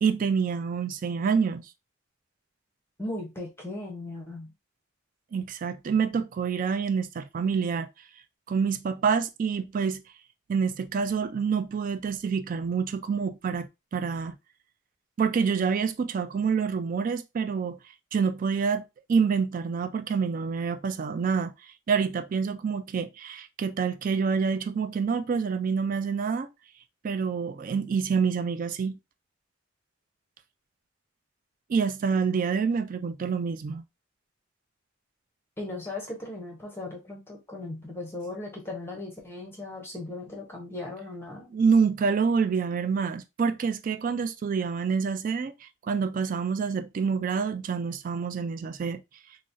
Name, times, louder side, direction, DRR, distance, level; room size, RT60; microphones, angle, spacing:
voice 1, 0.0-1.7 5.3-7.9 8.5-10.0 10.5-14.3 15.2-17.8 18.1-18.8 19.1-21.5 21.9-26.5 27.0-29.0 31.7-33.8 41.5-49.0, right 6 dB, 45° right, 0.3 m, -27 dB
voice 2, 3.0-4.5 35.6-41.5, left 2 dB, 10° left, 0.7 m, -37 dB
3.8 x 2.1 x 2.5 m
head